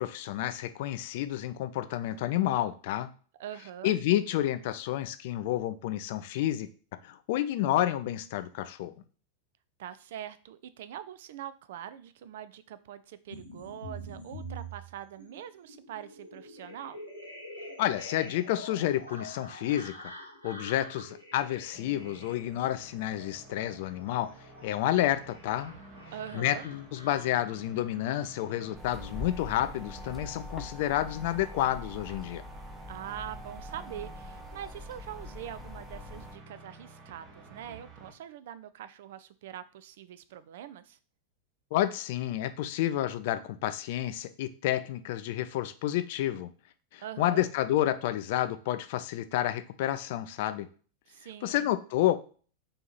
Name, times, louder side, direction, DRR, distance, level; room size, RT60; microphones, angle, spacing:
voice 1, 0.0-3.1 3.8-6.7 7.0-8.9 17.8-19.9 20.4-24.3 24.6-25.7 26.3-32.4 41.7-46.5 46.9-50.7 51.4-52.1, left 13 dB, 50° left, 11 dB, 0.4 m, -30 dB
voice 2, 3.4-3.9 9.8-17.0 26.1-26.6 32.9-41.0 47.0-47.5 51.1-51.7, right 10 dB, 55° right, 13 dB, 0.4 m, -43 dB
sound 1, 13.3-31.0 31.4-32.2, equal, 90° right, 1.1 m, -47 dB
sound 2, 21.6-38.1, right 3 dB, 30° right, 1.0 m, -51 dB
sound 3, 28.7-36.3, left 1 dB, 5° right, 0.9 m, -44 dB
4.3 x 2.9 x 4.1 m, 0.41 s
figure-of-eight pair, 90°, 0 cm